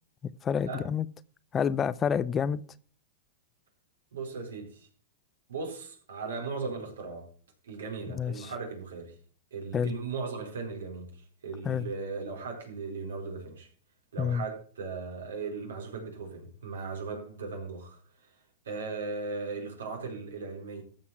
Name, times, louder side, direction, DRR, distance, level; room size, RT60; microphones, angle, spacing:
voice 1, 0.4-1.1 1.5-2.6 8.1-8.5 9.7-10.0 11.6-11.9 14.2-14.4, left 7 dB, 25° left, 0.6 m, -28 dB
voice 2, 4.1-4.9 5.5-7.3 7.6-9.1 9.5-13.7 14.1-18.0 18.6-20.8, right 4 dB, 80° right, 4.5 m, -37 dB
14.5 x 5.7 x 5.9 m
hypercardioid pair, 120°, 0 cm